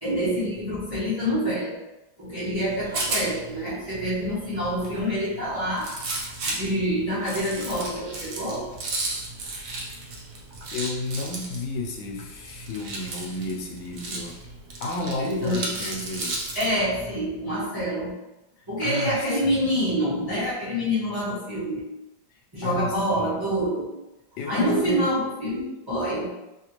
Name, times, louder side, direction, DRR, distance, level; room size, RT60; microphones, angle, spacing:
voice 1, 0.0-1.8 2.2-5.9 6.4-8.7 15.2-15.8 16.5-18.1 18.7-21.9 22.5-23.9 24.5-26.3, equal, 15° right, -12 dB, 0.9 m, -26 dB
Rattle, 2.5-16.7, right 2 dB, 85° right, 0.6 m, -35 dB
voice 2, 10.7-14.4 14.8-16.4 18.8-19.7 22.6-23.4 24.4-25.0, left 2 dB, 90° left, 0 dB, 1.4 m, -32 dB
3.3 x 2.5 x 2.9 m, 0.99 s
omnidirectional pair, 2.0 m